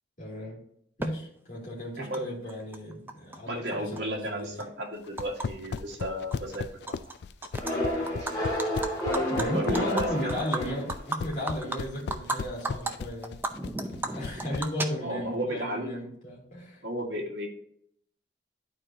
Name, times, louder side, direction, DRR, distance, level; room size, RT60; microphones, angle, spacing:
voice 1, 0.2-0.6 1.0-4.7 9.3-13.4 14.1-16.8, equal, 40° left, -5 dB, 2.7 m, -35 dB
Animal, 1.0-1.1 2.1-2.2 2.5-3.4 3.7-5.5 5.8-6.0 6.3-7.1 7.4-7.7 8.1-12.4 12.6-12.9 13.2-15.3, right 2 dB, 10° right, 0.5 m, -34 dB
voice 2, 2.0-2.3 3.5-6.8 8.2-8.4 9.4-10.5 14.3-16.0 16.8-17.5, equal, 65° right, 0 dB, 1.8 m, -34 dB
sound 1, 5.1-14.7, left 5 dB, 60° left, 0.3 m, -36 dB
sound 2, 7.6-11.1, left 1 dB, 20° left, 2.7 m, -30 dB
11.5 x 4.6 x 2.8 m, 0.70 s
head